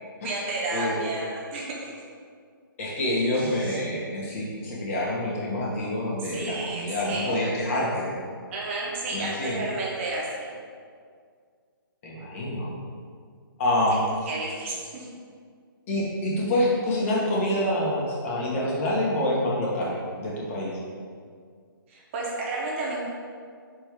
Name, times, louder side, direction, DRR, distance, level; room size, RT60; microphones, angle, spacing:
voice 1, 0.2-1.9 3.4-3.8 6.2-7.4 8.5-10.5 13.9-14.0 14.3-15.1 21.9-23.0, right 2 dB, 35° right, -3 dB, 1.3 m, -32 dB
voice 2, 2.8-8.1 9.1-9.7 12.0-12.7 13.6-14.0 15.9-20.0 20.2-20.8, left 1 dB, 35° left, -5 dB, 1.5 m, -27 dB
6.1 x 3.4 x 4.9 m, 2.1 s
figure-of-eight pair, 135°, 12 cm